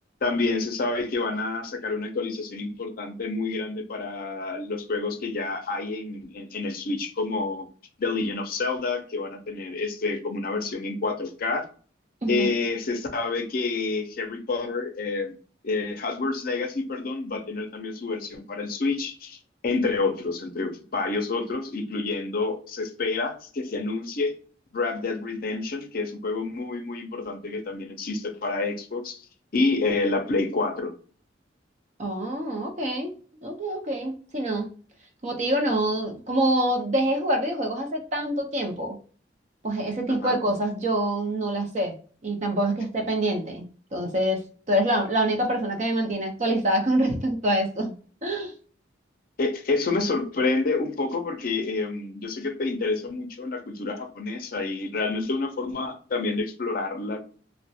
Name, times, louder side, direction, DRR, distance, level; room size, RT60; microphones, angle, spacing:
voice 1, 0.2-7.7 8.0-11.6 12.3-15.4 15.6-19.4 19.6-24.3 24.7-29.2 29.5-30.9 40.1-40.4 49.4-57.2, left 3 dB, 50° left, 5 dB, 0.5 m, -28 dB
voice 2, 12.2-12.5 32.0-33.1 33.4-34.7 35.2-39.0 39.6-41.9 42.2-43.7 43.9-44.4 44.7-47.9 48.2-48.5, right 1 dB, 40° right, 2 dB, 0.6 m, -25 dB
2.4 x 2.1 x 2.6 m, 0.40 s
head